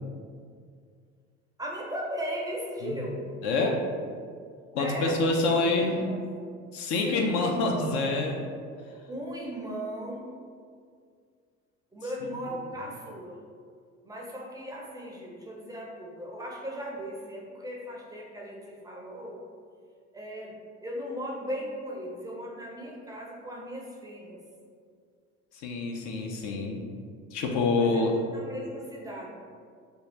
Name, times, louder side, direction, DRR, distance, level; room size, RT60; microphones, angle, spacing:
voice 1, 1.6-3.2 4.8-6.2 7.0-8.2 9.1-10.3 11.9-13.4 14.0-19.4 20.1-24.4 27.7-29.3, equal, 10° right, -3 dB, 0.5 m, -37 dB
voice 2, 3.4-3.8 4.7-6.0 6.7-8.4 25.5-26.9 27.3-28.1, left 3 dB, 50° left, 1 dB, 0.5 m, -26 dB
2.7 x 2.3 x 3.2 m, 2.1 s
hypercardioid pair, 60°, 37 cm